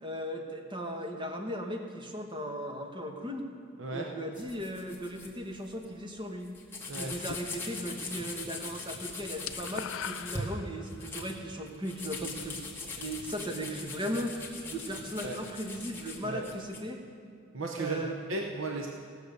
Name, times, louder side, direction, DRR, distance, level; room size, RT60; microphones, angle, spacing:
voice 1, 0.0-3.5 3.9-6.5 6.9-12.6 13.0-14.4 14.6-17.0 17.8-18.3, equal, 25° right, 3 dB, 1.1 m, -37 dB
voice 2, 3.8-4.1 6.9-7.1 15.2-15.4 16.2-16.5 17.5-18.9, right 3 dB, 65° right, 2 dB, 0.8 m, -35 dB
sound 1, 4.3-5.3 5.7-5.9 6.1-6.2 6.4-10.4 10.8-16.8, left 3 dB, 10° left, 1.4 m, -41 dB
sound 2, 7.1-8.0 8.3-8.7 8.9-11.0, left 8 dB, 65° left, 0.4 m, -41 dB
17.0 x 6.7 x 6.7 m, 2.2 s
head